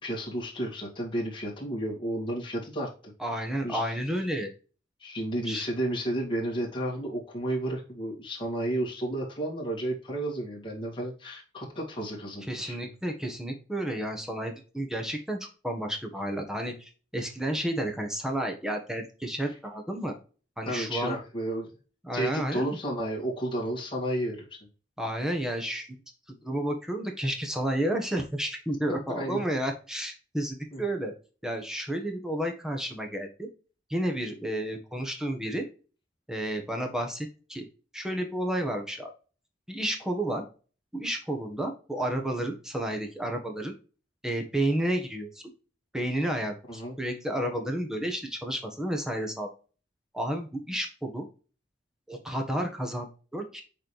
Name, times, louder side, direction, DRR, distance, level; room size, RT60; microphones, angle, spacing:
voice 1, 0.0-3.1 3.6-3.9 5.0-12.9 20.7-21.7 22.1-24.6 28.9-29.4 30.7-30.8 46.7-47.0, right 1 dB, 30° left, -4 dB, 2.2 m, -32 dB
voice 2, 3.2-4.5 5.4-5.7 12.5-20.1 20.6-21.2 22.0-22.8 25.0-25.9 26.4-31.1 31.4-33.5 33.9-35.6 36.3-37.7 37.9-39.1 39.7-40.4 40.9-43.7 44.2-45.4 45.9-49.5 50.1-51.3 52.1-53.6, right 1 dB, 5° right, 3 dB, 1.3 m, -31 dB
6.6 x 4.3 x 3.3 m, 0.36 s
head